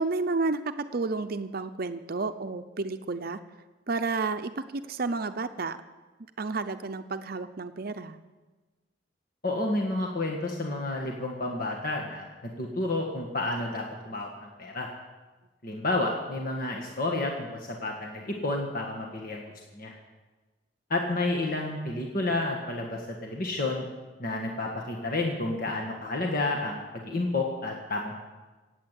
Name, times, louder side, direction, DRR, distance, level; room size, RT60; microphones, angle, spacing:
voice 1, 0.0-3.4 3.9-5.8 6.4-8.2, right 3 dB, 55° right, 9 dB, 0.6 m, -31 dB
voice 2, 9.4-14.9 15.6-20.0 20.9-23.8 24.2-28.2, left 2 dB, 50° left, 0 dB, 1.7 m, -30 dB
16.5 x 8.7 x 8.2 m, 1.2 s
head